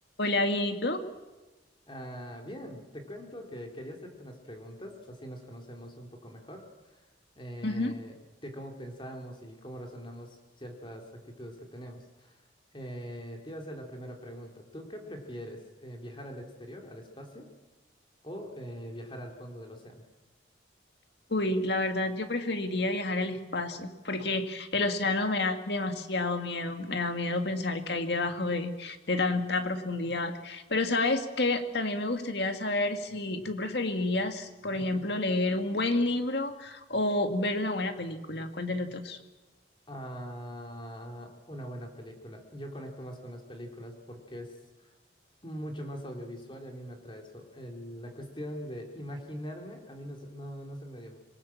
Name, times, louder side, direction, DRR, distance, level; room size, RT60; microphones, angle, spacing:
voice 1, 0.2-1.0 7.6-7.9 21.3-39.2, left 2 dB, 60° left, 7 dB, 2.2 m, -29 dB
voice 2, 1.9-7.0 7.4-8.1 8.4-12.4 12.7-17.5 18.2-20.0 34.8-35.1 39.9-44.5 44.8-44.9 45.4-51.2, equal, 25° left, 2 dB, 3.8 m, -42 dB
26.5 x 22.0 x 7.4 m, 1.1 s
head